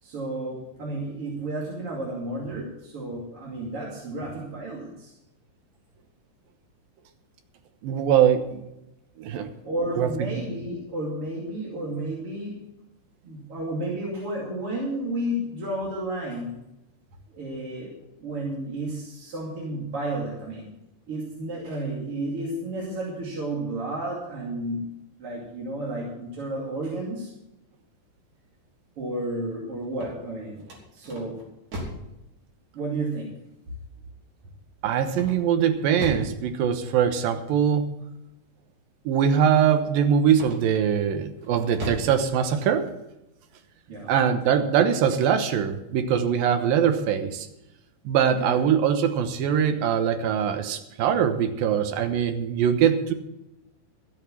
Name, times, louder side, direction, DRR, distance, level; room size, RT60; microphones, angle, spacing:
voice 1, 0.0-5.1 9.3-12.5 13.2-16.6 17.3-17.9 18.2-20.7 21.1-24.8 25.2-27.3 29.0-30.6 30.9-31.4 32.7-33.4 43.9-44.1 48.4-48.6, right 1 dB, 45° right, -4 dB, 3.2 m, -32 dB
voice 2, 7.8-8.6 9.2-9.5 10.0-10.4 34.8-37.9 39.1-42.9 44.1-47.5 48.1-53.1, right 8 dB, 90° right, 8 dB, 2.8 m, -22 dB
sound 1, 29.8-32.1 35.1-36.4 40.3-40.9 41.4-42.2, equal, 60° right, 4.6 m, -37 dB
14.0 x 8.3 x 7.2 m, 0.90 s
omnidirectional pair, 4.0 m